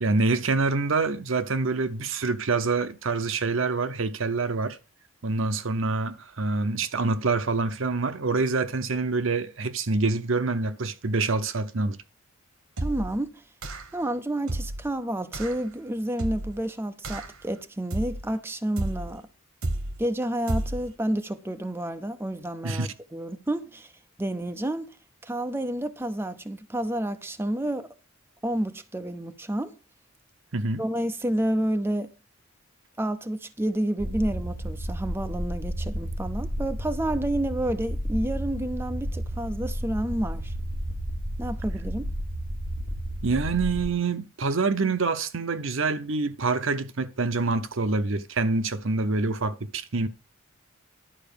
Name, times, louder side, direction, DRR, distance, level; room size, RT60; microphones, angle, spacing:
voice 1, 0.0-4.8 5.2-12.0 22.6-22.9 30.5-30.8 43.2-50.1, right 3 dB, 65° right, 0.8 m, -26 dB
voice 2, 12.8-13.4 13.9-19.2 20.0-23.9 24.2-24.9 25.2-27.9 28.4-29.8 30.8-32.1 33.0-40.5 41.4-42.1, right 1 dB, 10° right, 0.6 m, -30 dB
sound 1, 12.8-13.2 13.6-14.0 14.5-14.9 15.3-15.6 16.2-16.6 17.0-17.4 17.9-18.3 18.8-19.2 19.6-20.0 20.5-20.9, right 1 dB, 85° right, 1.3 m, -31 dB
sound 2, 34.0-43.9, equal, 45° right, 3.1 m, -32 dB
11.5 x 4.6 x 7.0 m
head